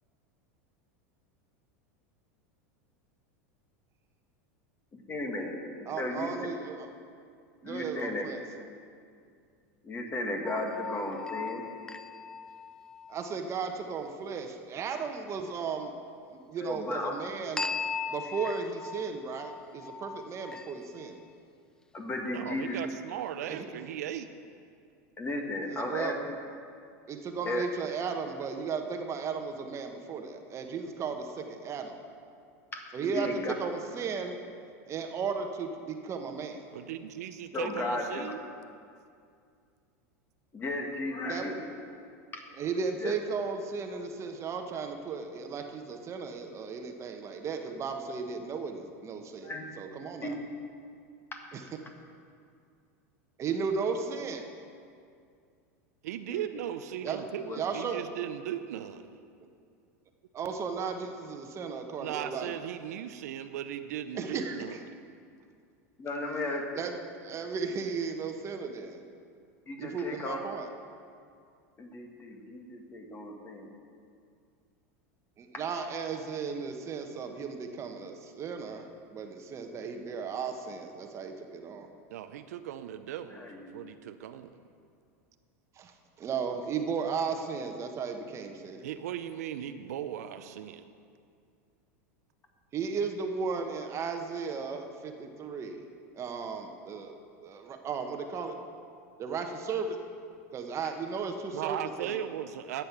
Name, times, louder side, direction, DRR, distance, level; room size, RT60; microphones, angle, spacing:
voice 1, 5.1-6.3 7.6-8.3 9.8-11.7 16.6-17.2 21.9-22.8 25.2-26.2 27.4-27.7 32.7-33.5 37.5-38.3 40.5-41.6 42.3-42.4 43.0-43.1 44.7-44.8 49.4-49.7 50.2-50.4 56.3-56.5 57.4-57.6 66.0-66.7 69.7-70.4 71.8-73.7 83.3-83.7, left 1 dB, 25° left, 3 dB, 1.8 m, -35 dB
voice 2, 5.9-6.9 7.6-8.4 13.1-15.9 16.3-17.7 18.1-21.2 22.7-22.8 23.4-23.7 25.6-26.1 27.1-32.0 32.9-33.3 33.6-34.4 34.9-36.7 41.3-41.6 42.6-50.4 51.5-51.6 53.4-54.5 57.0-57.2 57.5-58.0 60.3-62.5 64.1-64.8 66.7-66.9 67.2-69.0 69.8-70.7 75.4-81.9 85.8-88.9 92.7-95.9 96.1-97.1 97.4-98.6 99.2-100.0 100.5-102.2, right 5 dB, 35° right, 5 dB, 1.1 m, -35 dB
sound 1, 10.4-13.3 17.6-21.1, left 5 dB, 10° left, 0.4 m, -38 dB
voice 3, 22.2-24.3 36.7-38.4 56.0-59.1 62.0-64.8 82.1-84.6 88.8-90.9 101.5-102.8, right 10 dB, 80° right, 10 dB, 0.6 m, -37 dB
11.5 x 8.5 x 6.0 m, 2.3 s
hypercardioid pair, 110°, 9 cm